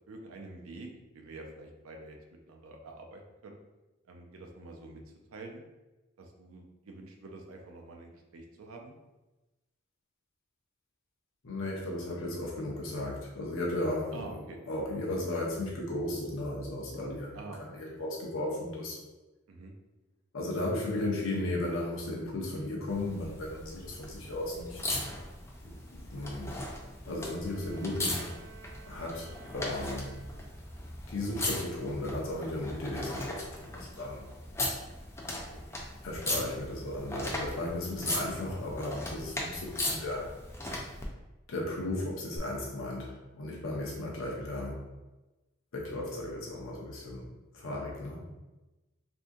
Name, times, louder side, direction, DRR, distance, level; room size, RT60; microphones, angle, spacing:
voice 1, 0.1-0.9 1.1-2.2 2.5-3.6 4.1-5.0 5.3-5.6 6.2-8.9 14.1-14.6 17.3-17.8 19.5-19.7 35.5-35.6, right 2 dB, 90° right, 2 dB, 0.5 m, -47 dB
voice 2, 11.4-19.0 20.3-25.1 25.6-26.6 27.1-28.3 28.9-30.2 31.1-34.3 36.0-40.3 41.5-44.9 45.7-47.3 47.5-48.2, left 1 dB, 80° left, -3 dB, 0.7 m, -35 dB
sound 1, 22.9-41.1 42.4-42.5, left 1 dB, 15° left, 0.3 m, -38 dB
sound 2, 27.0-30.8, right 6 dB, 30° right, 1.0 m, -54 dB
3.5 x 2.7 x 2.6 m, 1.1 s
head